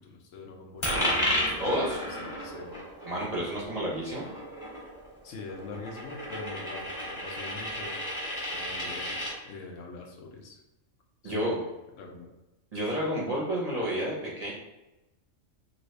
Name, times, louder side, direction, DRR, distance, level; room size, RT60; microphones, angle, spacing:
voice 1, 0.0-2.7 4.6-4.9 5.2-8.0 8.5-10.6 11.2-11.7 12.0-12.3, left 3 dB, 75° left, 2 dB, 1.0 m, -44 dB
Coin (dropping), 0.8-9.3, left 1 dB, 25° left, 1.1 m, -33 dB
voice 2, 1.6-2.0 3.0-4.2 11.2-11.5 12.7-14.5, equal, 40° right, -5 dB, 0.6 m, -30 dB
2.8 x 2.7 x 3.2 m, 1.0 s
omnidirectional pair, 1.3 m